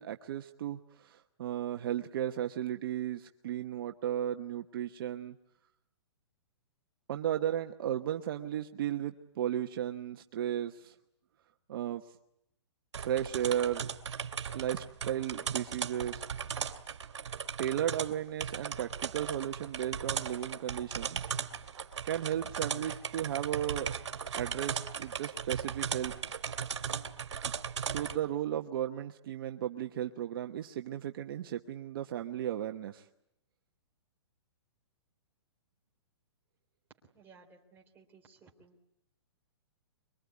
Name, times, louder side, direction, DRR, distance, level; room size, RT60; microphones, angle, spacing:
voice 1, 0.0-5.3 7.1-10.9 11.7-12.0 13.0-13.9 14.5-16.3 17.6-21.2 22.0-24.0 24.4-26.1 27.4-27.5 27.8-33.0, right 11 dB, 50° right, 5 dB, 1.1 m, -35 dB
sound 1, 12.9-28.2, right 7 dB, 80° right, 2.2 m, -37 dB
voice 2, 37.0-38.8, right 4 dB, 15° right, 0 dB, 3.4 m, -59 dB
24.5 x 23.0 x 9.6 m, 0.78 s
hypercardioid pair, 155°, 15 cm